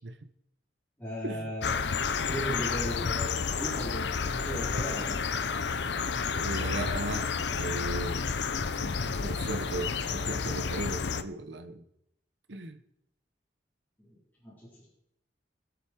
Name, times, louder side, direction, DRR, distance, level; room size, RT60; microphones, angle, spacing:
voice 1, 1.0-1.7 2.2-5.2 14.0-14.2 14.4-14.9, equal, 10° left, -9 dB, 4.1 m, -37 dB
sound 1, 1.6-11.2, left 5 dB, 75° left, 0.7 m, -31 dB
voice 2, 6.0-8.2 8.8-11.8 12.5-12.8, right 2 dB, 85° right, 7 dB, 1.0 m, -37 dB
21.0 x 8.3 x 4.7 m, 0.80 s
head